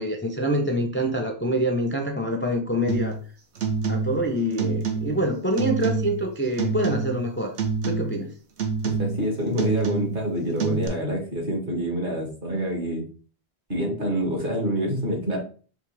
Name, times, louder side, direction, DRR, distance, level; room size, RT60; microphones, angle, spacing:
voice 1, 0.0-3.2 3.9-7.5 7.8-8.3, equal, 15° left, 2 dB, 0.4 m, -25 dB
sound 1, 2.9-3.2 3.6-4.3 4.6-5.3 5.6-6.2 6.6-7.3 7.6-8.2 8.6-9.3 9.6-10.3 10.6-10.9, right 5 dB, 85° right, 1.1 m, -27 dB
voice 2, 8.8-13.0 13.7-15.4, equal, 50° right, 1 dB, 1.7 m, -27 dB
5.0 x 3.0 x 3.3 m, 0.40 s
omnidirectional pair, 1.1 m